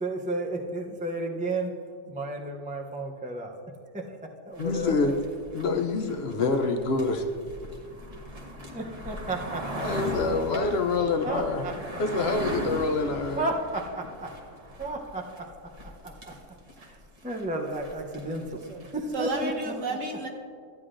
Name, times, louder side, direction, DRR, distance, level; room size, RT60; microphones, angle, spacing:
voice 1, 0.0-1.7 2.1-3.6 3.9-4.2 4.4-5.1 8.7-9.9 11.2-11.7 13.4-14.3 14.8-15.2 15.8-16.3 16.8-18.6 18.9-19.7, right 2 dB, 10° right, 2 dB, 0.3 m, -33 dB
voice 2, 4.6-5.1 5.5-7.2 9.8-11.7 12.0-13.5, left 3 dB, 60° left, 5 dB, 0.8 m, -26 dB
sound 1, 4.6-19.4, equal, 30° right, 1.1 m, -39 dB
voice 3, 18.4-18.8 19.1-20.3, right 2 dB, 75° right, 2 dB, 1.5 m, -32 dB
13.5 x 9.7 x 2.5 m, 2.2 s
omnidirectional pair, 1.3 m